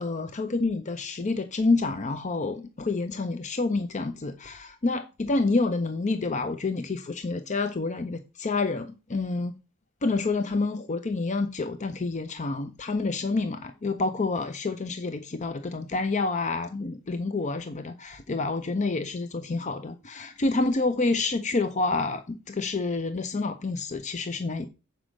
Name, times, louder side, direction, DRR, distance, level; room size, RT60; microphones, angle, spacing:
voice 1, 0.0-9.5 10.0-24.7, left 3 dB, 35° left, 0.6 m, -28 dB
7.7 x 5.1 x 6.3 m
head